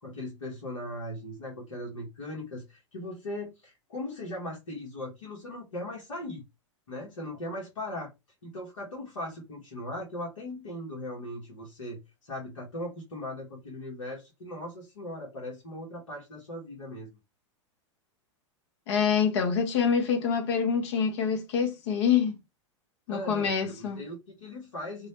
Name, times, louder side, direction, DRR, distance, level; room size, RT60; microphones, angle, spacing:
voice 1, 0.0-6.4 6.9-8.1 8.4-17.2 23.1-25.1, left 1 dB, 80° left, 1.0 m, -39 dB
voice 2, 18.9-22.4 23.1-24.0, left 7 dB, 60° left, 0.7 m, -26 dB
2.3 x 2.0 x 2.9 m
hypercardioid pair, 95°, 16 cm